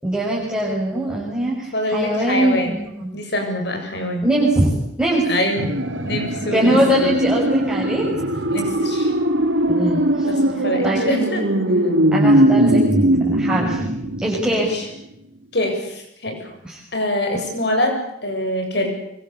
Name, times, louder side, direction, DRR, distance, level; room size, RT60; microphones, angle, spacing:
voice 1, 0.0-3.2 4.2-4.7 5.0-5.3 6.5-8.0 9.7-10.4 10.8-11.0 12.1-12.8 13.3-13.8 14.2-14.7 16.6-16.8, right 1 dB, 5° right, -6 dB, 6.5 m, -21 dB
voice 2, 1.7-2.8 3.1-4.2 5.2-5.6 6.0-7.1 8.5-9.1 10.2-11.4 14.5-14.9 15.5-16.5 16.9-18.9, left 1 dB, 60° left, 4 dB, 7.8 m, -24 dB
sound 1, 5.6-14.7 15.0-15.1, right 1 dB, 85° right, 3.7 m, -20 dB
25.0 x 23.5 x 8.4 m, 0.81 s
head